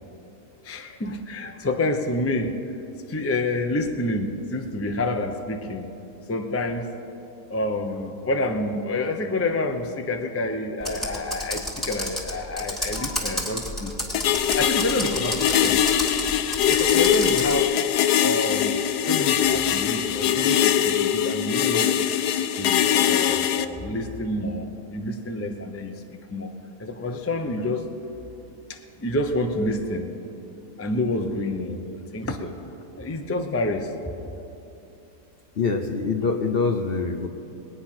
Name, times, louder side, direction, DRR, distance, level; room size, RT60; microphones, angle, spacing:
voice 1, 0.6-2.6 3.1-5.9 6.3-6.9 7.5-14.0 14.5-15.8 16.6-17.7 18.2-18.7 19.0-21.9 22.6-26.0 26.3-26.5 26.8-27.9 28.7-30.1 30.8-31.8 32.1-32.6 33.0-33.9, left 2 dB, 20° left, 4 dB, 0.3 m, -28 dB
Computer keyboard, 10.8-17.6, left 1 dB, ahead, 2.1 m, -31 dB
sound 1, 14.1-23.7, left 10 dB, 80° left, 1.2 m, -22 dB
voice 2, 35.6-37.3, left 4 dB, 50° left, 5 dB, 0.7 m, -24 dB
20.5 x 9.5 x 5.9 m, 2.9 s
omnidirectional pair, 1.7 m